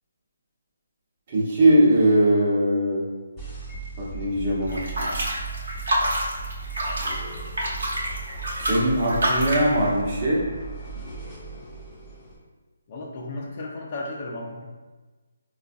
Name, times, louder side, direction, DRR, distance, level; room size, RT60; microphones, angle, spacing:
voice 1, 1.3-3.0 4.0-5.1 8.6-10.4, right 1 dB, 35° right, -6 dB, 1.1 m, -20 dB
sound 1, 3.4-12.4, right 4 dB, 10° left, 0.9 m, -37 dB
sound 2, 4.7-9.7, right 1 dB, 65° right, 1.0 m, -27 dB
voice 2, 12.9-14.6, left 2 dB, 35° left, -1 dB, 0.6 m, -34 dB
4.3 x 2.4 x 2.6 m, 1.3 s
figure-of-eight pair, 150°, 0 cm